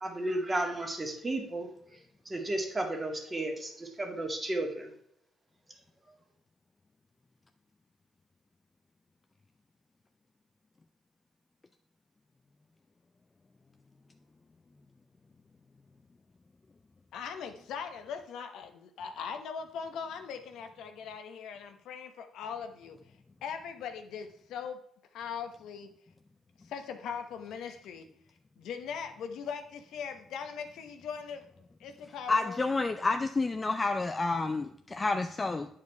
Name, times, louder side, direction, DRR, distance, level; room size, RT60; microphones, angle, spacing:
voice 1, 0.0-2.0 2.3-4.9, right 1 dB, 20° right, 2 dB, 1.9 m, -33 dB
voice 2, 17.1-23.0 23.4-24.8 25.1-25.9 26.7-28.1 28.6-31.5 31.8-32.7, left 6 dB, 80° left, 7 dB, 0.9 m, -40 dB
voice 3, 32.3-35.7, left 3 dB, 25° left, 7 dB, 0.5 m, -29 dB
8.7 x 4.8 x 4.7 m, 0.70 s
cardioid pair, 90°, 0 cm